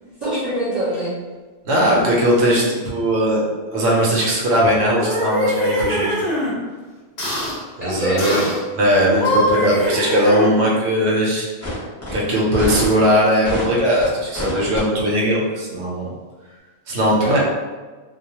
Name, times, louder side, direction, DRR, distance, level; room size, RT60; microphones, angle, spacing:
voice 1, 0.0-1.1 7.8-8.5 17.2-17.4, right 1 dB, 45° right, -9 dB, 0.7 m, -24 dB
voice 2, 1.6-6.1 7.8-8.4 8.8-11.5 12.1-16.1 16.9-17.4, equal, 80° right, -4 dB, 0.9 m, -19 dB
sound 1, 4.8-6.5 7.2-7.6 8.2-8.6 9.1-10.8, equal, 50° left, 0.6 m, -22 dB
sound 2, 11.6-11.8 12.0-12.1 12.5-13.0 13.4-14.1 14.3-14.8, equal, 15° left, 0.7 m, -26 dB
2.2 x 2.1 x 2.8 m, 1.3 s
omnidirectional pair, 1.1 m